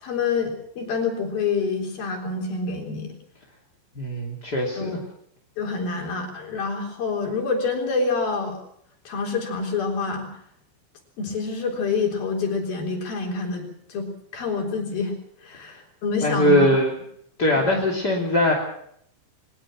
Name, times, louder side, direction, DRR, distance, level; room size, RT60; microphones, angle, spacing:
voice 1, 0.0-3.1 4.8-5.0 5.6-8.6 9.1-10.3 11.2-15.1 15.4-16.8 17.5-17.8, left 4 dB, 50° left, 2 dB, 5.2 m, -27 dB
voice 2, 4.0-5.0 16.2-16.9 17.4-18.5, left 1 dB, 25° left, -1 dB, 2.3 m, -21 dB
23.0 x 21.0 x 6.1 m, 0.68 s
omnidirectional pair, 6.0 m